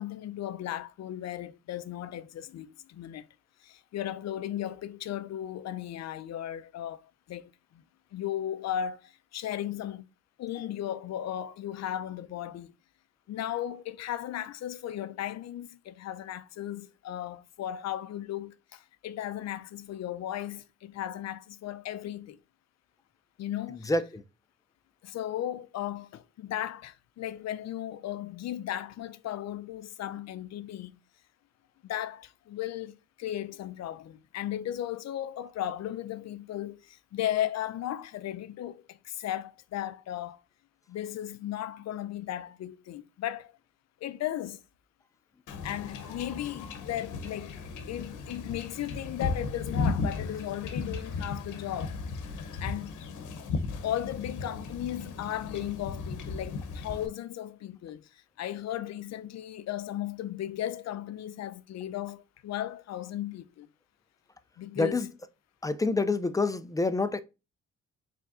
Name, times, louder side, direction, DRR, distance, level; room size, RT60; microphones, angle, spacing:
voice 1, 0.0-3.3 3.6-7.8 8.1-10.1 10.4-12.7 13.3-22.4 23.4-24.0 25.0-31.0 31.8-40.4 40.9-43.5 44.0-44.6 45.6-47.6 47.9-52.0 52.6-52.9 53.8-63.7 64.6-65.1 66.1-66.2, left 11 dB, 60° left, 0.5 m, -36 dB
Wind / Ocean / Boat Water vehicle, 45.5-57.1, left 4 dB, 80° left, 0.9 m, -35 dB
voice 2, 65.6-67.2, left 3 dB, 10° left, 0.4 m, -26 dB
4.7 x 3.5 x 2.5 m
cardioid pair, 90°, 30 cm